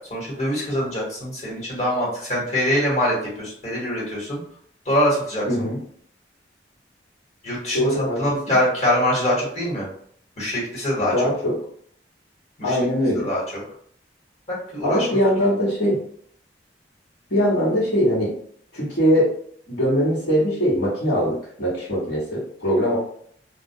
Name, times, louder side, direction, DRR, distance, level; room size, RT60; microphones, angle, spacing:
voice 1, 0.1-4.4 4.8-5.4 7.4-9.9 10.4-11.1 12.6-12.8 13.1-13.6 14.5-15.1 15.4-15.5, left 1 dB, 40° left, -7 dB, 1.2 m, -24 dB
voice 2, 5.5-5.8 7.7-8.6 11.0-11.6 12.6-13.3 14.8-16.0 17.3-18.3 18.7-19.3 19.7-23.0, equal, 80° left, -12 dB, 1.1 m, -21 dB
2.2 x 2.1 x 2.6 m, 0.63 s
head